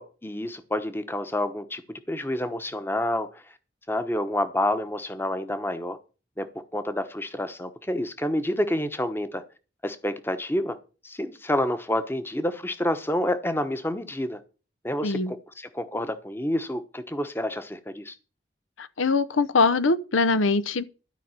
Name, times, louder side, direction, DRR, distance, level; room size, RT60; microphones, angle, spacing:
voice 1, 0.0-3.4 3.9-6.0 6.4-9.4 9.8-10.8 11.0-14.4 14.8-18.1, left 1 dB, 10° left, 0.9 m, -28 dB
voice 2, 15.0-15.3 18.8-20.8, left 3 dB, 90° left, 0.8 m, -22 dB
12.5 x 5.3 x 8.8 m
head